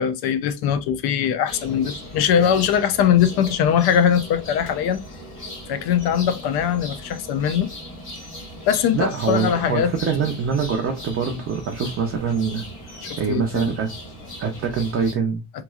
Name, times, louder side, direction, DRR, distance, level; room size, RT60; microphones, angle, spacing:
voice 1, 0.0-5.0 5.7-7.7 8.7-9.9 13.0-13.7, left 8 dB, 65° left, 0.5 m, -21 dB
sound 1, 1.5-15.1, equal, 30° left, 1.2 m, -38 dB
voice 2, 8.9-12.6 13.2-13.9 14.4-15.4, right 6 dB, 35° right, 0.4 m, -24 dB
3.1 x 2.3 x 2.3 m
cardioid pair, 175°, 41 cm